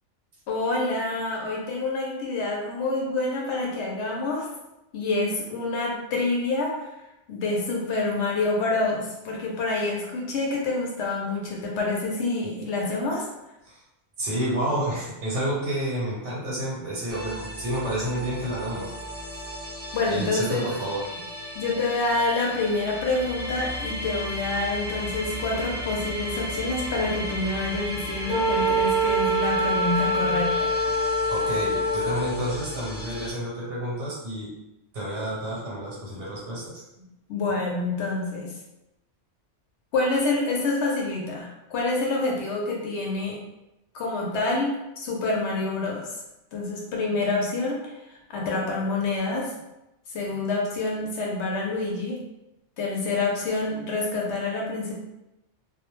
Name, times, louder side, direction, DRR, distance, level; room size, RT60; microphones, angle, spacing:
voice 1, 0.5-4.5 4.9-6.9 7.3-13.2 19.9-20.7 21.6-30.8 37.3-38.5 39.9-43.4 43.9-46.1 46.5-48.0 48.3-49.5 50.1-52.2 52.8-54.9, left 3 dB, 75° left, -2 dB, 0.9 m, -27 dB
voice 2, 14.2-18.9 20.1-21.1 31.3-34.5 34.9-36.8, right 1 dB, 80° right, -6 dB, 1.0 m, -30 dB
sound 1, 17.1-33.3, equal, 40° left, 0.6 m, -35 dB
Wind instrument woodwind instrument, 28.3-32.4, right 1 dB, 60° right, 0.7 m, -24 dB
2.3 x 2.1 x 3.0 m, 0.91 s
omnidirectional pair, 1.2 m